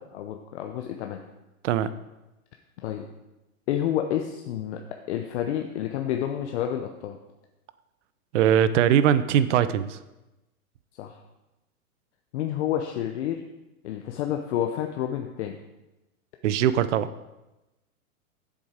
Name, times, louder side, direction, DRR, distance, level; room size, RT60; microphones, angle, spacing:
voice 1, 0.1-1.2 2.8-3.1 3.7-4.8 5.1-7.2 11.0-11.2 12.3-13.4 13.8-15.6, left 10 dB, 50° left, 4 dB, 0.7 m, -29 dB
voice 2, 8.3-10.0 16.4-17.1, right 10 dB, 55° right, 14 dB, 0.6 m, -21 dB
7.5 x 7.2 x 5.0 m, 1.0 s
hypercardioid pair, 145°, 43 cm